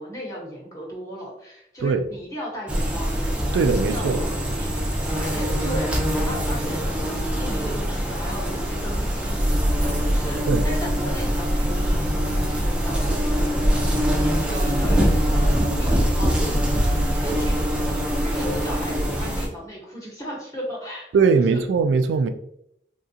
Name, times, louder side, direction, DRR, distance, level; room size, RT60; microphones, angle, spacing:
voice 1, 0.0-3.1 3.5-21.1 21.3-21.6, equal, 20° left, 1.0 m, -36 dB
sound 1, 2.7-19.5, equal, 5° right, 0.4 m, -23 dB
voice 2, 3.5-4.2 10.5-10.6 21.1-22.3, right 5 dB, 85° right, 0.3 m, -20 dB
3.6 x 2.4 x 2.7 m
head